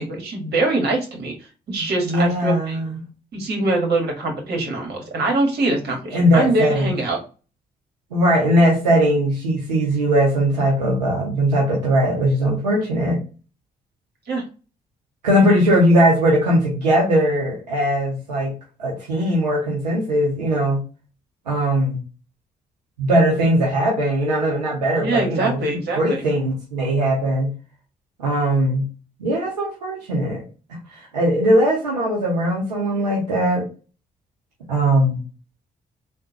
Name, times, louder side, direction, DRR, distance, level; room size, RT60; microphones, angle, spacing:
voice 1, 0.0-1.3 1.7-2.8 3.3-7.2 14.3-14.4 25.0-26.2, right 2 dB, 55° right, 2 dB, 1.4 m, -23 dB
voice 2, 2.1-3.0 6.1-6.9 8.1-13.2 15.2-18.5 18.8-20.8 21.5-22.0 23.0-27.5 28.2-28.8 29.2-30.4 30.9-33.7 34.7-35.2, equal, 90° right, -3 dB, 0.7 m, -19 dB
3.6 x 2.3 x 2.8 m, 0.34 s
hypercardioid pair, 45°, 21 cm